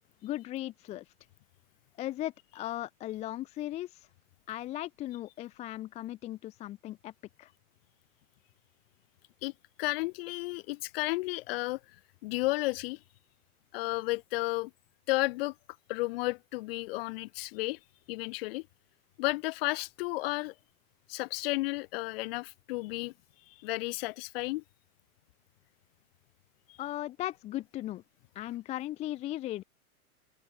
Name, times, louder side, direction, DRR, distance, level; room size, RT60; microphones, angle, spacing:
voice 1, 0.2-1.0 2.0-4.1 4.5-7.1 7.4-7.5 26.8-28.0 28.3-29.6, left 14 dB, 15° left, 0.7 m, -37 dB
voice 2, 9.8-11.8 12.2-13.0 13.7-14.7 15.1-15.5 15.9-17.8 18.1-18.7 19.2-20.5 21.1-23.1 23.5-24.6 26.7-26.8, left 22 dB, 40° left, 2.1 m, -32 dB
hypercardioid pair, 155°, 44 cm